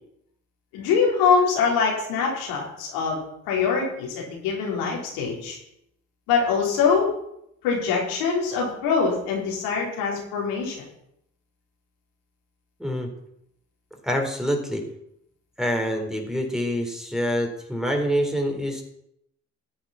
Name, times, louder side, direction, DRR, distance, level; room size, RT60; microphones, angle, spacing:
voice 1, 0.7-3.2 3.5-5.6 6.3-7.1 7.6-10.8, left 5 dB, 80° left, -2 dB, 4.1 m, -23 dB
voice 2, 12.8-13.1 14.0-14.8 15.6-18.8, equal, ahead, 1 dB, 3.8 m, -26 dB
14.0 x 8.1 x 5.8 m, 0.76 s
hypercardioid pair, 60°, 38 cm